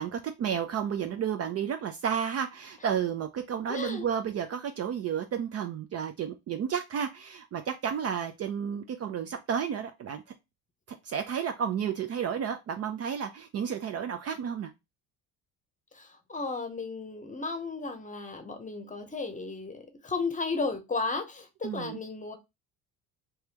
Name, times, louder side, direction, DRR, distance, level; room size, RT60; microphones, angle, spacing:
voice 1, 0.0-10.2 11.0-14.7 21.6-22.0, right 8 dB, 40° right, 0.4 m, -32 dB
voice 2, 3.7-4.1 15.9-22.4, left 4 dB, 20° left, 0.8 m, -34 dB
3.2 x 2.3 x 2.9 m
supercardioid pair, 75°, 40 cm